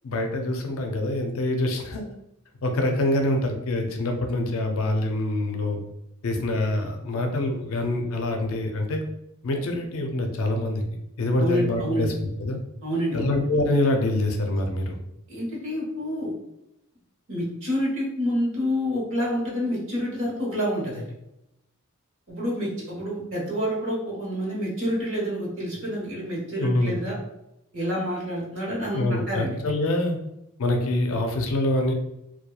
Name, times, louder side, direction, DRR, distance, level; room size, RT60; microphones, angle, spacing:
voice 1, 0.0-2.1 2.6-5.8 6.2-9.0 9.4-10.8 11.2-12.1 12.4-12.6 13.1-15.0 26.6-27.0 28.9-30.2 30.6-31.9, left 1 dB, 65° left, 4 dB, 0.4 m, -25 dB
voice 2, 11.4-12.1 12.8-13.3 15.3-16.3 17.3-21.1 22.3-27.1 27.7-29.6, equal, 60° right, -5 dB, 1.1 m, -28 dB
2.8 x 2.2 x 2.2 m, 0.85 s
head